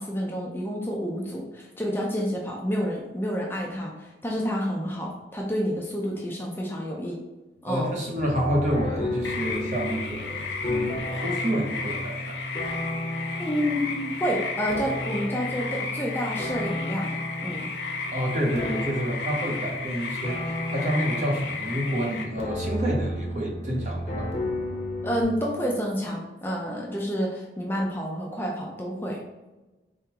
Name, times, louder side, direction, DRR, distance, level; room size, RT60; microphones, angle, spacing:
voice 1, 0.0-7.2 7.6-7.9 13.4-17.1 17.4-17.7 25.0-29.2, equal, 10° left, -2 dB, 0.5 m, -29 dB
voice 2, 7.6-12.4 18.1-24.3, equal, 40° right, -2 dB, 0.9 m, -28 dB
sound 1, 8.1-25.2, left 1 dB, 35° left, 0.9 m, -33 dB
sound 2, 9.2-22.2, left 4 dB, 80° left, 0.7 m, -34 dB
4.4 x 3.7 x 2.9 m, 1.1 s
head